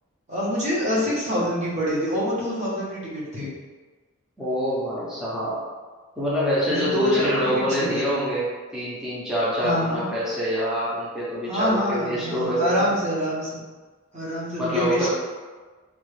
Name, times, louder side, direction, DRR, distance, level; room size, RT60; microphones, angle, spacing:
voice 1, 0.3-3.5 6.7-8.1 9.6-10.0 11.5-13.5 14.1-15.1, equal, 30° right, -8 dB, 1.0 m, -25 dB
voice 2, 4.4-5.6 6.2-12.8 14.6-15.1, equal, 5° right, -9 dB, 0.6 m, -26 dB
3.0 x 2.3 x 3.2 m, 1.4 s
head